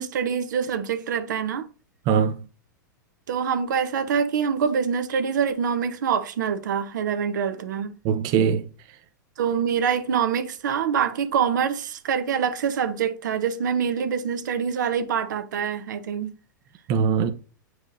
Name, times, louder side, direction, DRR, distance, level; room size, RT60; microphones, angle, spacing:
voice 1, 0.0-1.7 3.3-7.9 9.4-16.3, right 7 dB, 70° right, 1.0 m, -25 dB
voice 2, 2.1-2.4 8.0-9.0 16.9-17.3, right 7 dB, 40° right, 0.7 m, -22 dB
8.5 x 4.7 x 2.7 m
hypercardioid pair, 105°, 10 cm